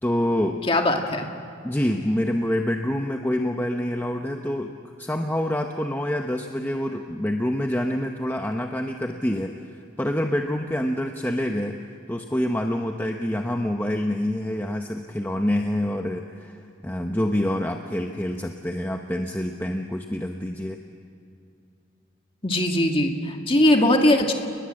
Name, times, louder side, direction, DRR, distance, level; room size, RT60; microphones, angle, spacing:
voice 1, 0.0-0.6 1.6-4.7 5.0-9.6 10.0-11.8 12.1-16.6 16.8-20.8, left 1 dB, 10° left, 3 dB, 0.9 m, -26 dB
voice 2, 0.7-1.3 22.4-24.3, left 1 dB, 25° left, 3 dB, 2.0 m, -20 dB
30.0 x 20.5 x 7.7 m, 2.6 s
head